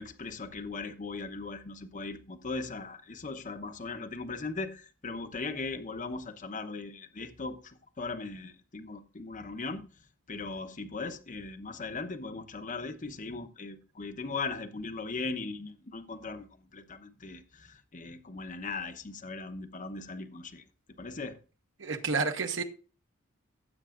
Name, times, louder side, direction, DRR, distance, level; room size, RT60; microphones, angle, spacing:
voice 1, 0.0-9.8 10.3-20.6 21.0-21.4, left 3 dB, 40° left, 0.9 m, -39 dB
voice 2, 21.8-22.6, right 4 dB, 60° right, 1.2 m, -30 dB
16.0 x 8.1 x 2.5 m
head